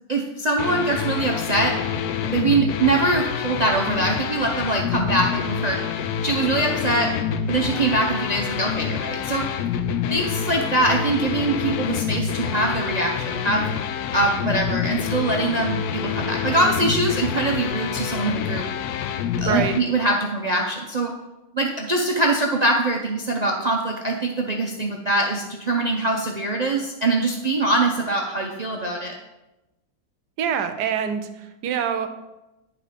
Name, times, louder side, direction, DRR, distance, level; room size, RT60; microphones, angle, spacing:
voice 1, 0.1-1.7 2.3-5.8 6.2-7.1 7.4-9.5 10.1-13.7 14.1-18.6 19.4-21.1 21.5-29.1, right 2 dB, 60° right, 1 dB, 0.4 m, -23 dB
sound 1, 0.6-19.8, left 8 dB, 75° left, 1.0 m, -27 dB
voice 2, 19.4-19.8 30.4-32.1, right 7 dB, 85° right, 9 dB, 1.3 m, -25 dB
10.5 x 3.9 x 5.0 m, 0.98 s
omnidirectional pair, 1.7 m